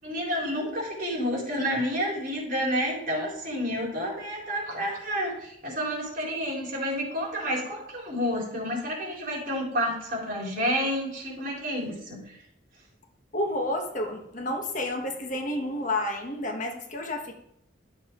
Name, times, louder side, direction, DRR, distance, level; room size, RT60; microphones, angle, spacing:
voice 1, 0.0-12.4, equal, 45° right, -3 dB, 4.1 m, -30 dB
voice 2, 13.3-17.3, left 1 dB, 40° left, 2 dB, 1.5 m, -30 dB
12.0 x 7.2 x 3.8 m, 0.72 s
head